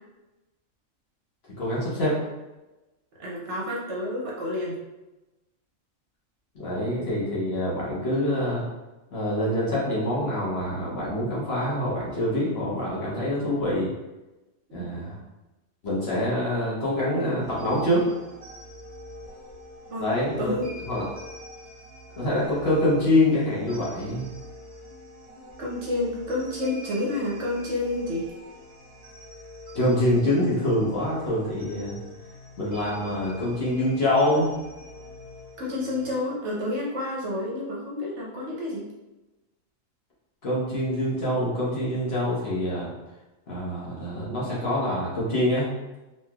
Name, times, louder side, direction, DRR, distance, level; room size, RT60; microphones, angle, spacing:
voice 1, 1.6-2.2 6.5-8.6 9.1-13.9 14.7-15.2 15.8-18.1 20.0-20.5 20.9-21.0 22.2-24.3 29.7-31.9 32.6-34.5 40.4-42.9 43.5-45.7, left 1 dB, 50° left, -7 dB, 1.1 m, -25 dB
voice 2, 3.2-4.8 14.7-15.2 19.9-20.1 20.4-20.7 25.6-28.3 35.6-38.9, left 2 dB, 65° right, -3 dB, 0.9 m, -30 dB
sound 1, 17.4-36.1, left 1 dB, 40° right, 0.5 m, -44 dB
3.2 x 2.9 x 2.3 m, 1.0 s
omnidirectional pair, 1.4 m